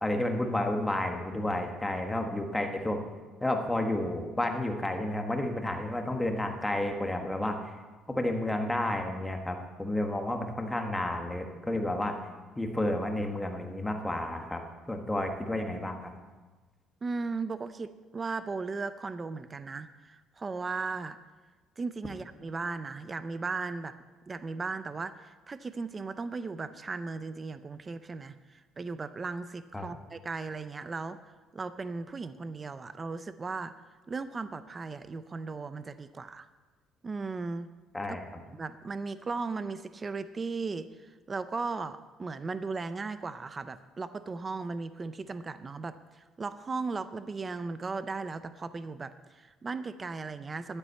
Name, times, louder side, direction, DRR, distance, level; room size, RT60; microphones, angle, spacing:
voice 1, 0.0-3.0 3.4-7.7 8.1-12.2 12.6-14.6 14.9-16.1 29.7-29.9 37.9-38.4, left 1 dB, 5° left, 4 dB, 1.2 m, -31 dB
voice 2, 17.0-21.2 21.8-23.9 24.3-33.7 34.1-36.5 37.0-37.7 38.1-38.2 38.5-50.8, right 4 dB, 20° right, 12 dB, 0.4 m, -37 dB
11.5 x 9.8 x 8.2 m, 1.3 s
cardioid pair, 180°, 0 cm